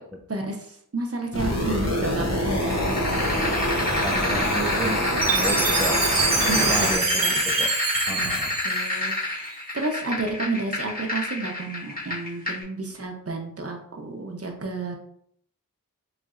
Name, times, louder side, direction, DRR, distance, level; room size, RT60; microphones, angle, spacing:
voice 1, 0.3-0.7 0.9-3.0 6.5-6.9 7.1-7.4 8.1-8.4 8.6-15.0, right 3 dB, 45° right, 3 dB, 0.7 m, -31 dB
sound 1, 1.3-7.0, equal, 55° left, 0.8 m, -25 dB
sound 2, 2.6-12.6, left 2 dB, 25° left, 1.4 m, -29 dB
voice 2, 4.0-5.1 5.3-7.7 8.1-8.6, right 1 dB, 5° right, 2 dB, 0.4 m, -32 dB
Chime, 5.2-9.5, right 4 dB, 85° right, 0.8 m, -26 dB
4.0 x 3.2 x 2.4 m, 0.68 s
wide cardioid pair, 55°, 32 cm